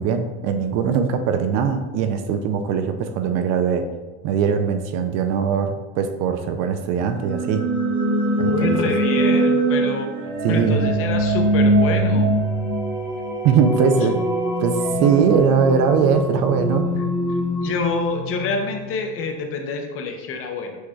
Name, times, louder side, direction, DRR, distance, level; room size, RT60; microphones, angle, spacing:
voice 1, 0.0-3.9 4.2-7.6 8.4-8.7 10.4-10.8 13.4-14.3 14.6-16.9, right 6 dB, 50° right, 7 dB, 0.4 m, -21 dB
sound 1, 7.1-19.0, right 1 dB, 5° right, 0.9 m, -22 dB
voice 2, 8.4-12.4 17.6-20.8, left 4 dB, 40° left, 4 dB, 0.6 m, -27 dB
6.2 x 3.2 x 2.3 m, 1.2 s
cardioid pair, 140°, 35 cm